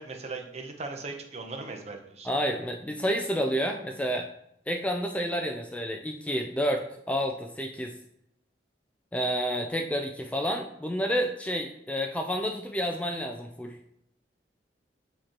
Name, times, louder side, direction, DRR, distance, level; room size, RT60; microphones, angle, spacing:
voice 1, 0.0-2.3, right 3 dB, 40° right, 3 dB, 0.8 m, -38 dB
voice 2, 2.2-4.3 4.7-7.9 9.1-13.8, equal, 10° left, 3 dB, 0.4 m, -29 dB
7.5 x 3.0 x 4.3 m, 0.75 s
head